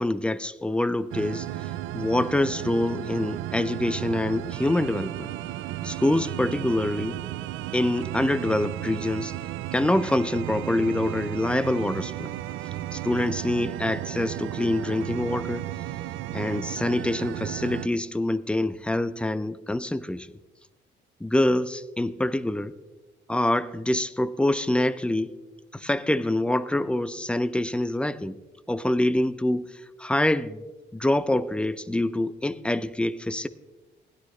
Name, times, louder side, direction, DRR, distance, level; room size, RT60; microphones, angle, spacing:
voice 1, 0.0-1.5 1.9-5.3 5.8-7.2 7.7-9.3 9.7-12.3 12.9-15.7 16.3-20.3 21.2-22.8 23.3-25.4 25.7-28.4 28.7-29.7 30.0-30.6 30.9-33.5, left 1 dB, 5° left, 15 dB, 0.5 m, -25 dB
sound 1, 1.1-17.9, right 14 dB, 85° right, 0.5 m, -34 dB
17.0 x 11.5 x 3.2 m, 1.2 s
cardioid pair, 90°, 20 cm